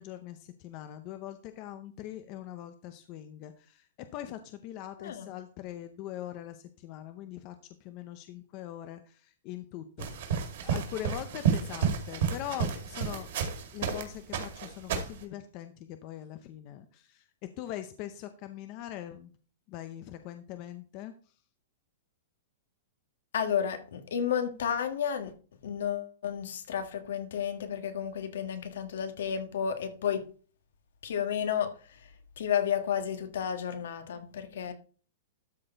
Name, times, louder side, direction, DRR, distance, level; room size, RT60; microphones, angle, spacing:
voice 1, 0.0-3.9 4.1-7.6 7.8-13.3 13.7-17.3 17.6-19.3 19.7-21.1 34.7-34.8, left 12 dB, 25° left, 0.6 m, -42 dB
voice 2, 5.0-5.3 23.3-25.3 25.6-30.3 31.0-31.7 32.4-34.7, left 8 dB, 65° left, 1.5 m, -32 dB
sound 1, 10.0-14.0 14.3-15.2, right 7 dB, 50° right, 2.1 m, -31 dB
12.5 x 4.3 x 4.4 m
supercardioid pair, 180°, 0 cm